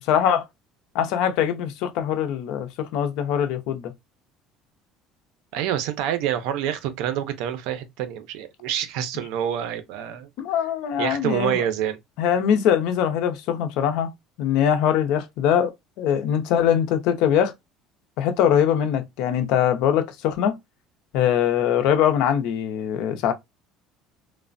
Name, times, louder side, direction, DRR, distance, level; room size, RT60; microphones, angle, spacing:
voice 1, 0.1-0.5 0.9-3.9 10.4-11.6 12.2-14.1 14.4-15.7 16.0-17.5 18.2-20.6 21.1-23.3, left 9 dB, 65° left, 0.5 m, -22 dB
voice 2, 5.5-10.3 11.0-12.0, right 10 dB, 75° right, 0.5 m, -27 dB
3.2 x 2.0 x 2.5 m
cardioid pair, 160°, 0 cm